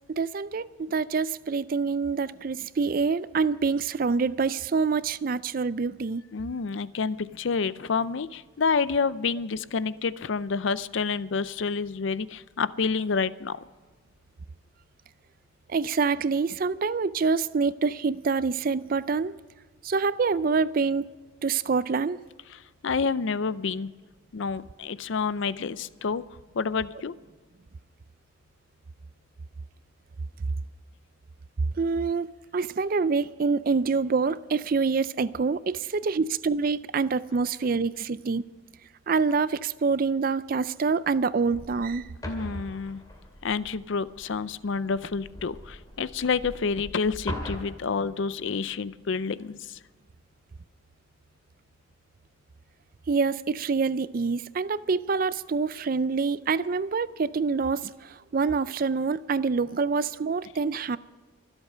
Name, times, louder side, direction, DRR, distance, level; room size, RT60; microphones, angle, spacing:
voice 1, 0.1-6.2 15.7-19.3 19.8-21.1 21.4-22.2 31.8-32.3 32.5-38.4 39.1-42.1 53.1-61.0, right 4 dB, 45° right, 0.4 m, -26 dB
voice 2, 6.3-13.6 22.5-23.9 24.3-26.2 26.5-27.1 42.2-43.0 43.4-49.8, left 5 dB, 65° left, 0.5 m, -29 dB
sound 1, 41.6-47.6, equal, 20° left, 2.5 m, -40 dB
24.5 x 8.1 x 5.5 m
head